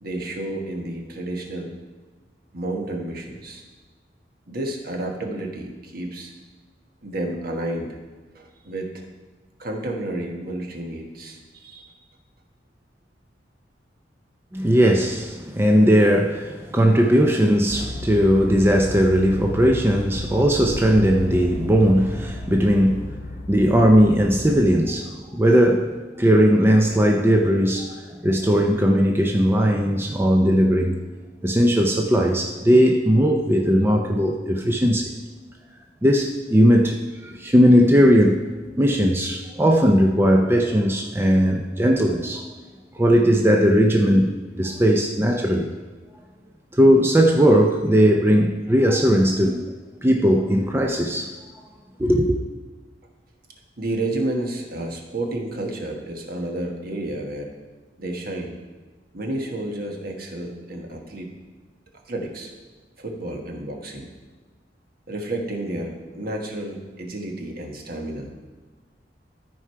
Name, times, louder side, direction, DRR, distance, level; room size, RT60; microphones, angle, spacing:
voice 1, 0.0-1.7 2.5-3.6 4.5-6.3 7.0-8.0 8.3-9.0 9.6-11.9 53.8-57.5 58.0-58.5 59.1-61.3 62.1-62.5 63.0-64.1 65.1-68.3, right 1 dB, 55° right, 1 dB, 1.3 m, -31 dB
voice 2, 14.5-23.2 23.5-31.0 31.4-35.1 36.0-38.4 38.8-42.5 42.9-45.7 46.7-49.7 50.0-51.3 52.0-52.4, equal, 15° right, 2 dB, 0.5 m, -18 dB
sound 1, 17.7-24.8, left 2 dB, 70° left, 0.7 m, -34 dB
13.5 x 4.7 x 4.6 m, 1.3 s
head